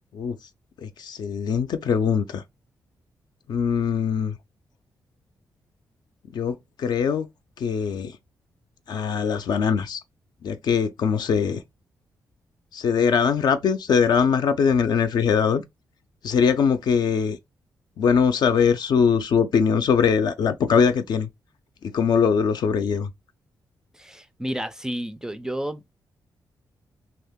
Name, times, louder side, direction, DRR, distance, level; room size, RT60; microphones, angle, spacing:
voice 1, 0.8-2.4 3.5-4.4 6.3-7.3 7.6-8.1 8.9-10.0 10.4-11.6 12.7-15.6 16.2-17.4 18.0-21.3 21.8-23.1, left 6 dB, 70° left, 0.5 m, -22 dB
voice 2, 23.9-25.9, right 1 dB, 10° right, 0.3 m, -31 dB
2.8 x 2.5 x 3.5 m
cardioid pair, 95°, 7 cm